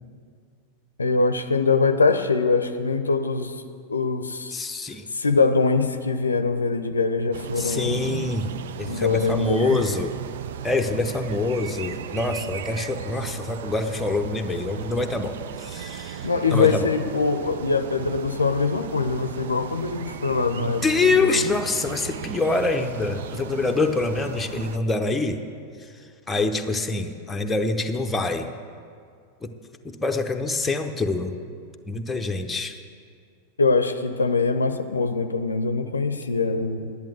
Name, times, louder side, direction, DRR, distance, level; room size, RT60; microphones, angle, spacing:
voice 1, 1.0-3.6 3.9-4.6 5.1-8.1 8.9-9.8 16.2-20.8 21.2-21.4 33.6-36.9, left 4 dB, 75° left, 10 dB, 0.6 m, -23 dB
voice 2, 4.5-5.1 7.6-8.5 8.8-10.2 10.6-16.9 20.6-25.4 25.8-28.5 29.4-29.5 29.8-31.4 31.9-32.8, left 3 dB, 10° left, 4 dB, 0.8 m, -25 dB
sound 1, 7.3-24.8, right 9 dB, 60° right, 0.4 m, -36 dB
10.5 x 8.5 x 7.6 m, 2.2 s
figure-of-eight pair, 90°, 0 cm